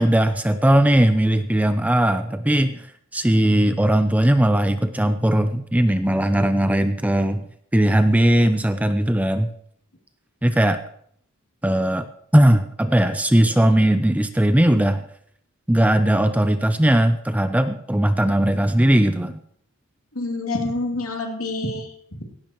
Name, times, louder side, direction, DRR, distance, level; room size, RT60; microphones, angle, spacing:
voice 1, 0.0-2.9 3.1-7.4 7.7-9.5 10.4-10.8 11.6-12.1 12.3-15.0 15.7-19.4, right 1 dB, 5° right, 9 dB, 0.5 m, -18 dB
voice 2, 20.1-22.2, left 2 dB, 75° left, 2 dB, 2.8 m, -27 dB
17.0 x 16.5 x 3.1 m, 0.67 s
head